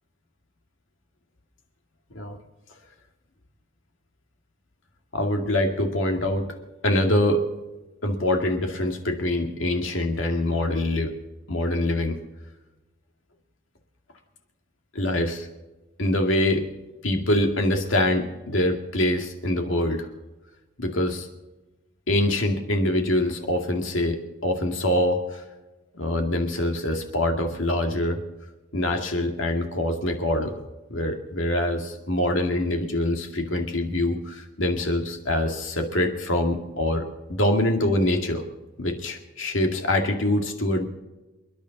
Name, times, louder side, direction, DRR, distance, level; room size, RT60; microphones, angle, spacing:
voice 1, 5.1-6.5 6.8-7.4 8.0-11.1 11.5-12.2 14.9-15.5 16.0-16.7 17.0-20.1 20.8-21.3 22.1-25.4 25.9-28.2 28.7-30.6 30.9-38.4 38.8-40.9, left 1 dB, 75° left, 3 dB, 2.3 m, -24 dB
29.0 x 10.5 x 4.1 m, 1.1 s
head